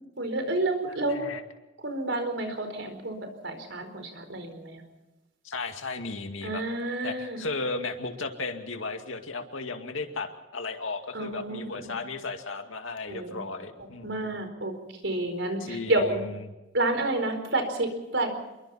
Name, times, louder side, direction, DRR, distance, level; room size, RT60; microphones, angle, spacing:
voice 1, 0.2-1.3 1.8-3.2 3.4-4.8 6.4-7.4 11.1-11.9 13.1-13.4 13.8-14.7 15.0-16.2 16.7-18.3, right 2 dB, 70° right, 6 dB, 4.5 m, -29 dB
voice 2, 0.9-1.4 5.4-6.6 7.0-14.2 15.6-16.3, left 3 dB, 90° left, 6 dB, 2.3 m, -35 dB
27.0 x 23.0 x 4.3 m, 1.0 s
head